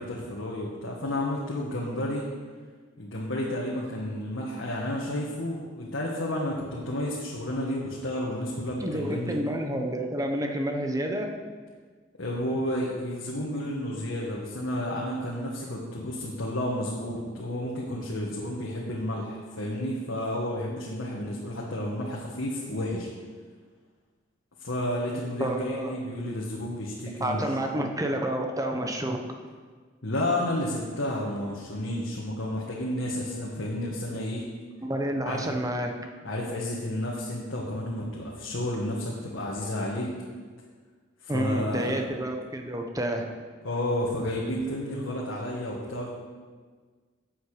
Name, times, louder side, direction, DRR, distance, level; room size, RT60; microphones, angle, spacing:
voice 1, 0.0-2.2 3.0-9.4 12.2-23.1 24.6-27.4 30.0-34.4 35.2-35.4 36.2-40.1 41.2-42.0 43.6-46.1, left 1 dB, 85° left, -4 dB, 1.7 m, -31 dB
voice 2, 8.8-11.3 25.4-25.9 27.2-29.2 34.8-35.9 41.3-43.3, right 1 dB, 20° right, 3 dB, 1.1 m, -29 dB
13.0 x 8.1 x 5.0 m, 1.5 s
head